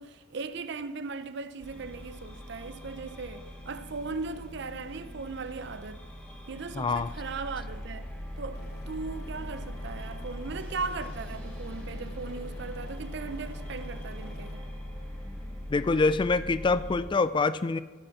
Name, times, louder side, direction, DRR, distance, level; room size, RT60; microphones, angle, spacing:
voice 1, 0.0-6.0 6.5-8.1 8.4-14.6, right 4 dB, 60° right, 0.6 m, -38 dB
sound 1, 1.6-17.0, equal, 10° left, 2.0 m, -41 dB
voice 2, 6.8-7.1 15.7-17.8, left 3 dB, 25° left, 0.3 m, -25 dB
Aircraft, 8.5-14.5, left 1 dB, 55° left, 1.0 m, -50 dB
13.5 x 5.3 x 7.2 m
head